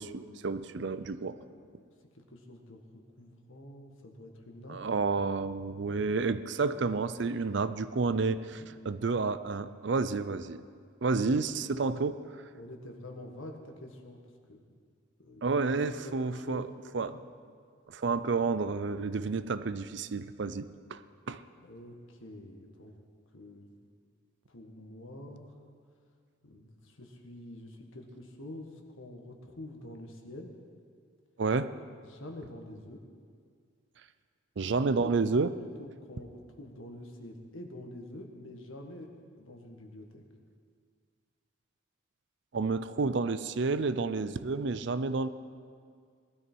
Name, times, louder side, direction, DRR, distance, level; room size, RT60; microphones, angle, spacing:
voice 1, 0.0-1.4 4.7-10.6 11.0-12.2 15.4-16.7 16.9-17.1 17.9-21.0 21.3-21.4 31.4-31.7 34.6-35.5 42.5-45.3, right 4 dB, 55° right, 13 dB, 0.5 m, -30 dB
voice 2, 1.2-1.6 2.1-2.8 3.2-4.8 8.5-8.7 12.5-14.2 14.5-14.6 15.2-15.7 16.0-17.2 21.6-22.9 23.3-23.7 24.5-25.6 26.4-30.5 32.0-33.0 34.8-35.1 35.6-39.1 39.4-40.2, left 1 dB, 75° left, 2 dB, 1.7 m, -47 dB
19.0 x 12.5 x 4.6 m, 2.1 s
head